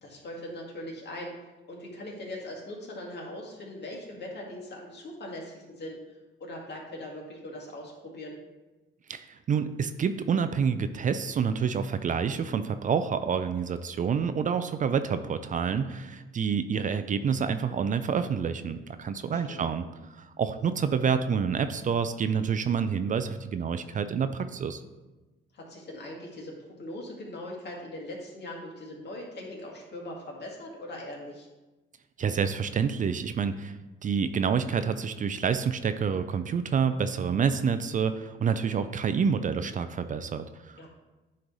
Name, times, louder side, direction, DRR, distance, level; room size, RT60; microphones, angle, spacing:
voice 1, 0.0-1.3 1.7-6.0 6.4-8.4 19.3-19.7 25.5-31.5 40.8-40.9, left 1 dB, 60° left, -1 dB, 1.9 m, -40 dB
voice 2, 9.1-19.9 20.2-24.8 32.2-33.8 34.0-40.9, right 6 dB, 40° right, 10 dB, 0.4 m, -28 dB
9.5 x 3.2 x 4.0 m, 1.1 s
cardioid pair, 90°, 20 cm